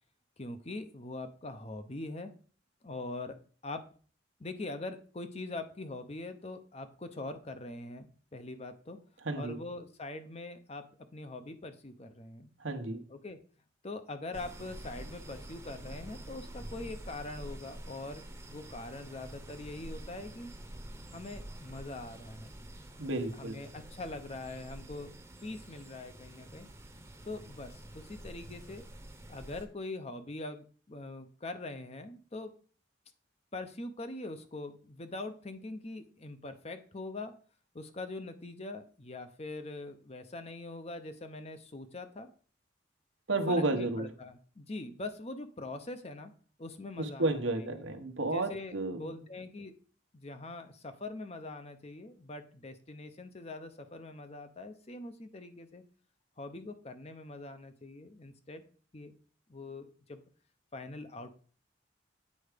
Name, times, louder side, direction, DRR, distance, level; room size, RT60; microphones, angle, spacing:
voice 1, 0.4-2.3 2.8-3.4 3.6-3.8 4.4-9.0 9.3-10.8 11.1-12.5 13.1-13.4 13.8-20.5 21.1-22.5 23.3-25.1 25.4-26.7 27.2-28.8 29.3-32.5 33.5-37.3 37.7-42.3 43.5-46.3 46.6-47.8 48.3-49.7 50.1-55.8 56.4-58.6 58.9-59.2 59.5-60.2 60.7-61.4, left 2 dB, 35° left, 9 dB, 0.7 m, -43 dB
voice 2, 9.2-9.6 12.6-13.0 23.0-23.6 43.3-44.1 47.0-49.1, right 2 dB, 85° right, 7 dB, 1.1 m, -32 dB
sound 1, 14.3-29.6, right 1 dB, 15° right, 0.9 m, -47 dB
8.5 x 4.6 x 5.1 m, 0.42 s
head